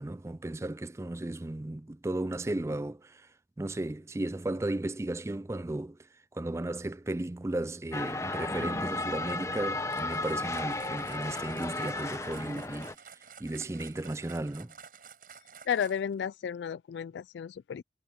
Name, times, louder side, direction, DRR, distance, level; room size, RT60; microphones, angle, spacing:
voice 1, 0.0-3.3 3.6-14.7, right 1 dB, 15° right, 0.3 m, -35 dB
sound 1, 7.9-12.9, left 2 dB, 15° left, 0.8 m, -34 dB
sound 2, 9.9-16.2, right 6 dB, 50° right, 7.9 m, -51 dB
voice 2, 15.7-17.8, left 8 dB, 80° left, 0.3 m, -33 dB
head